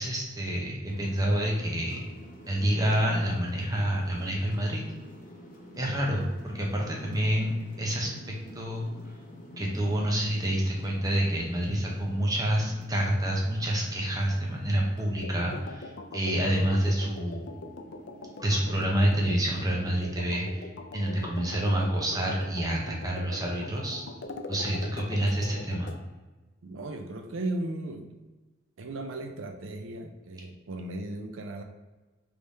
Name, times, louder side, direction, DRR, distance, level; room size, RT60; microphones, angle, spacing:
voice 1, 0.0-2.0 2.5-4.8 5.8-8.1 8.5-8.9 9.6-17.5 18.4-20.7 20.9-24.0 24.5-25.9, right 1 dB, 20° right, -1 dB, 0.8 m, -28 dB
sound 1, 0.8-18.8, equal, 45° left, 1.0 m, -49 dB
sound 2, 15.2-26.0, left 2 dB, 60° left, 0.4 m, -42 dB
voice 2, 26.6-28.1 28.8-31.6, right 2 dB, 80° right, 5 dB, 0.5 m, -36 dB
3.6 x 3.3 x 4.0 m, 1.2 s
head